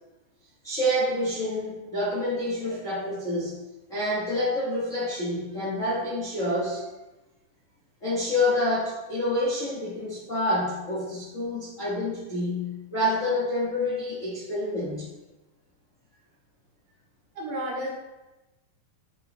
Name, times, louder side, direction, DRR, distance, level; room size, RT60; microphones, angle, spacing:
voice 1, 0.6-3.5 3.9-6.8 8.0-15.1, left 1 dB, 45° left, -8 dB, 1.0 m, -28 dB
voice 2, 17.4-17.9, right 1 dB, 70° right, -3 dB, 2.6 m, -31 dB
7.3 x 4.6 x 3.3 m, 1.1 s
omnidirectional pair, 3.6 m